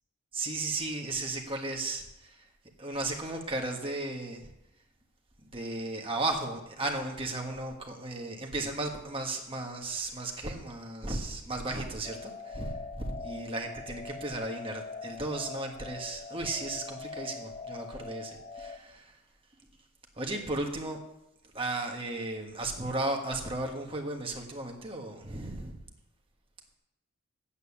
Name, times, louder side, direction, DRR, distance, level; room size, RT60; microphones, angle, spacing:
voice 1, 0.3-2.5 2.8-4.5 5.5-19.1 20.2-21.0 21.5-25.8, right 2 dB, 25° right, 2 dB, 1.5 m, -35 dB
sound 1, 12.0-18.8, left 4 dB, 25° left, 0.7 m, -43 dB
9.3 x 8.4 x 7.1 m, 0.88 s
head